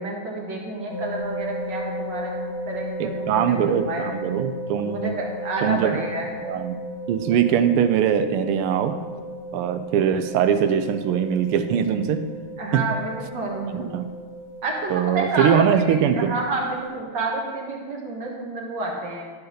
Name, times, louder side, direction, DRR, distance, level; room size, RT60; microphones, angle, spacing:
voice 1, 0.0-2.4 2.7-4.0 4.9-6.3 12.6-13.9 14.6-15.8 16.1-19.3, right 2 dB, 55° right, -2 dB, 2.1 m, -29 dB
sound 1, 0.9-16.9, equal, 30° left, 2.2 m, -35 dB
voice 2, 3.0-5.1 5.6-6.0 6.4-6.8 7.1-8.9 9.5-12.4 12.7-12.9 13.7-14.1 14.9-16.3, right 8 dB, 90° right, 9 dB, 1.6 m, -22 dB
12.0 x 4.7 x 6.4 m, 1.5 s
omnidirectional pair, 2.4 m